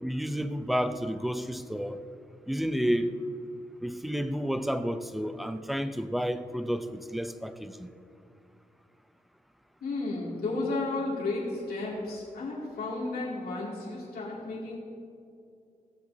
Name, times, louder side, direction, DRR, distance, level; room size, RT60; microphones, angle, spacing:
voice 1, 0.0-2.0 2.5-3.2 3.8-7.9, equal, ahead, 11 dB, 0.4 m, -31 dB
voice 2, 9.8-14.8, left 2 dB, 90° left, -6 dB, 2.4 m, -33 dB
16.5 x 7.8 x 2.7 m, 2.6 s
cardioid pair, 85°, 15 cm